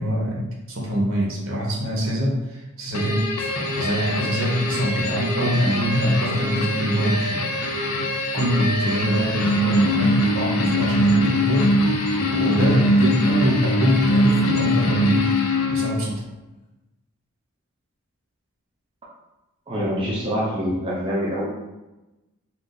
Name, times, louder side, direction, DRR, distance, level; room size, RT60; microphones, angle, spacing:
voice 1, 0.0-7.4 7.9-15.3 15.7-16.2, equal, 70° right, -2 dB, 0.7 m, -24 dB
sound 1, 2.9-16.1, left 1 dB, 85° left, 0.5 m, -22 dB
voice 2, 19.7-21.5, equal, 25° right, -5 dB, 0.5 m, -25 dB
2.5 x 2.3 x 3.8 m, 1.0 s
head